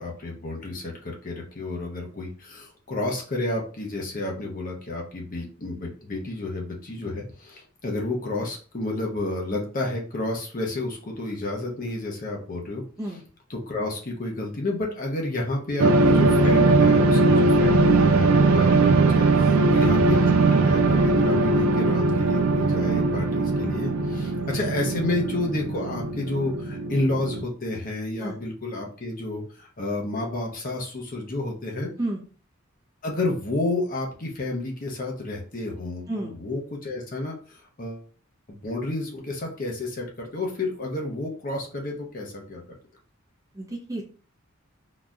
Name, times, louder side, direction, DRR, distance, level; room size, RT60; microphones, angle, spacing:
voice 1, 0.0-12.8 13.5-31.9 33.0-38.0 38.5-42.6, left 2 dB, 40° left, 0 dB, 0.9 m, -31 dB
sound 1, 15.8-27.4, right 3 dB, 85° right, 0.4 m, -20 dB
voice 2, 43.5-44.0, right 1 dB, 15° right, -2 dB, 0.7 m, -31 dB
3.9 x 2.8 x 2.4 m, 0.40 s
head